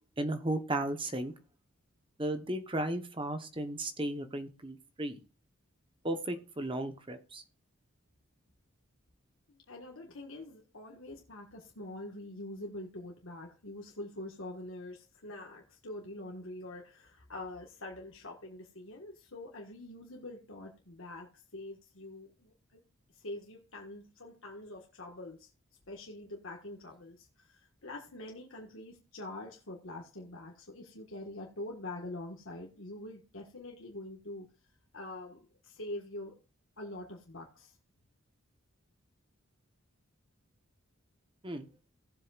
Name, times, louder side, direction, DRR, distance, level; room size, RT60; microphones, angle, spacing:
voice 1, 0.2-1.3 2.2-5.2 6.0-7.4 41.4-41.7, right 1 dB, 25° right, 1.0 m, -35 dB
voice 2, 9.5-22.8 23.1-25.5 25.9-34.5 34.9-36.4 36.8-37.8, left 1 dB, 70° left, 1.6 m, -45 dB
17.5 x 7.6 x 2.5 m
head